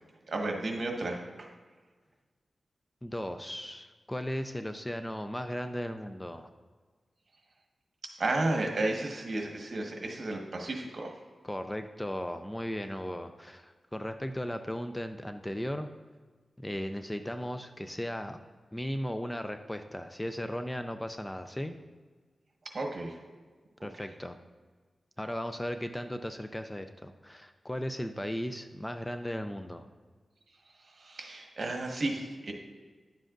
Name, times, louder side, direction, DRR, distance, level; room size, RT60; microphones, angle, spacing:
voice 1, 0.3-1.5 8.2-11.1 22.7-23.2 31.0-32.5, right 2 dB, 55° right, 2 dB, 1.3 m, -33 dB
voice 2, 3.0-6.5 11.4-15.9 16.6-18.4 18.7-21.8 23.8-24.4 25.2-29.8, equal, 10° left, 7 dB, 0.4 m, -36 dB
10.5 x 7.6 x 2.5 m, 1.4 s
wide cardioid pair, 95°, 0 cm